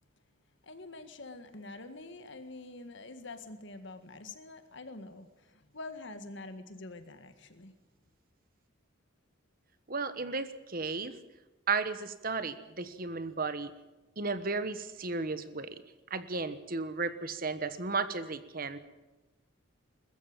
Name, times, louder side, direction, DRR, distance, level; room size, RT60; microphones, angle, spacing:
voice 1, 0.6-7.7, left 2 dB, 60° left, 9 dB, 1.8 m, -46 dB
voice 2, 9.9-11.1 11.7-13.7 14.2-15.7 16.1-18.8, right 4 dB, 45° right, 12 dB, 1.2 m, -34 dB
21.5 x 14.0 x 8.9 m, 1.1 s
head